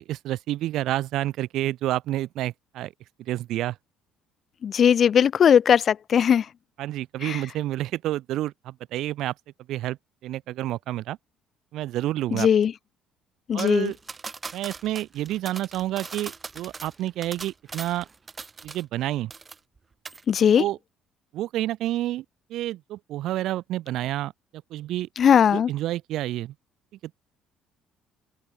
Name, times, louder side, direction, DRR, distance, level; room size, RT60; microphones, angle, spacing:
voice 1, 0.0-2.9 3.2-3.8 6.8-9.3 9.7-11.2 11.7-12.5 13.5-14.0 14.5-18.1 18.6-19.3 20.6-20.8 21.3-22.2 22.5-24.3 24.7-25.1 25.5-26.5 27.0-27.1, right 14 dB, 55° right, 4.3 m, -29 dB
voice 2, 4.6-6.4 7.3-7.4 12.4-12.7 13.5-13.9 20.3-20.6 25.2-25.7, left 8 dB, 45° left, 1.2 m, -18 dB
sound 1, 13.6-19.0 19.3-19.8 20.1-20.2, right 4 dB, 25° right, 5.5 m, -40 dB
open air
figure-of-eight pair, 50°, 0 cm